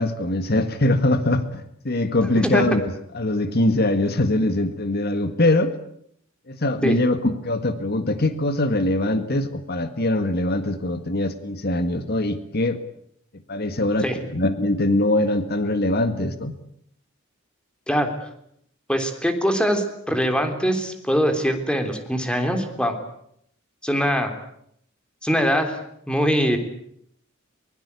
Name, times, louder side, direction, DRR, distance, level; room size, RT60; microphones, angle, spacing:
voice 1, 0.0-5.7 6.5-12.8 13.5-16.5, left 1 dB, 50° left, 10 dB, 1.8 m, -22 dB
voice 2, 18.9-23.0 23.8-24.3 25.2-25.8 26.1-26.6, equal, 5° left, 6 dB, 3.5 m, -22 dB
24.0 x 22.0 x 8.4 m, 0.72 s
head